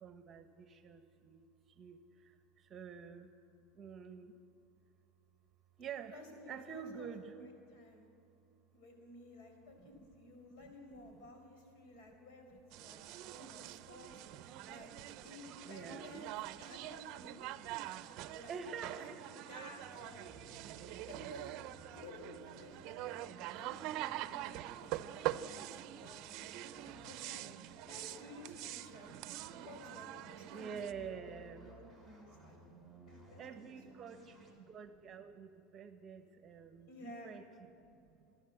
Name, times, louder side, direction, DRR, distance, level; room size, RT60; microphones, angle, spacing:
voice 1, 0.0-1.4 1.8-2.0 2.7-3.3 3.8-4.3 5.8-6.2 6.5-7.5 9.8-9.9 15.6-16.3 18.5-19.3 30.4-31.7 33.4-34.3 34.7-37.4, right 7 dB, 30° right, 9 dB, 1.3 m, -47 dB
voice 2, 6.1-8.1 8.7-17.4 17.8-18.6 19.0-20.4 21.1-21.6 21.9-29.2 29.5-32.6 33.0-33.7 34.1-34.5 36.9-37.4, left 2 dB, 65° left, 3 dB, 5.0 m, -55 dB
sound 1, 12.7-30.9, right 14 dB, 50° right, 0.7 m, -45 dB
sound 2, 19.2-34.5, right 2 dB, 10° left, 4.0 m, -60 dB
29.5 x 11.5 x 8.1 m, 2.7 s
supercardioid pair, 140°, 0 cm